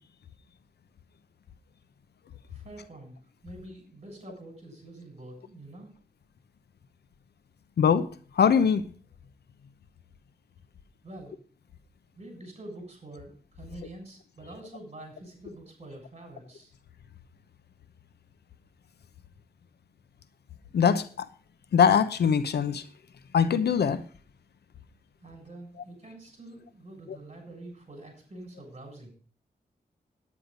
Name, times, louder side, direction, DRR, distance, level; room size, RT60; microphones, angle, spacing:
voice 1, 2.5-3.1 3.4-5.9 11.0-11.4 12.2-16.7 25.2-29.1, right 1 dB, 40° right, 7.0 m, -46 dB
voice 2, 7.8-8.1 8.4-8.9 20.7-21.3 21.7-22.8 23.3-24.0, left 7 dB, 85° left, 0.8 m, -22 dB
9.8 x 9.8 x 5.2 m
cardioid pair, 70°, 16 cm